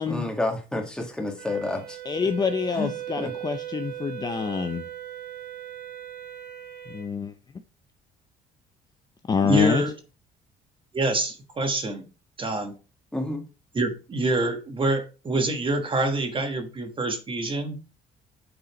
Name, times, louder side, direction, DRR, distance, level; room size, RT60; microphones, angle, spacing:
voice 1, 0.1-2.0 2.7-2.9 3.2-3.3 13.1-13.4, left 2 dB, 5° left, 2 dB, 1.8 m, -29 dB
Wind instrument woodwind instrument, 1.4-7.1, right 12 dB, 80° right, 0.9 m, -38 dB
voice 2, 2.1-4.9 6.9-7.3 9.3-9.8, left 5 dB, 25° left, 8 dB, 0.5 m, -26 dB
voice 3, 9.4-9.9 10.9-12.0 12.4-12.7 13.7-17.8, right 1 dB, 30° right, 6 dB, 1.4 m, -26 dB
6.7 x 4.2 x 4.2 m, 0.32 s
cardioid pair, 110°, 17 cm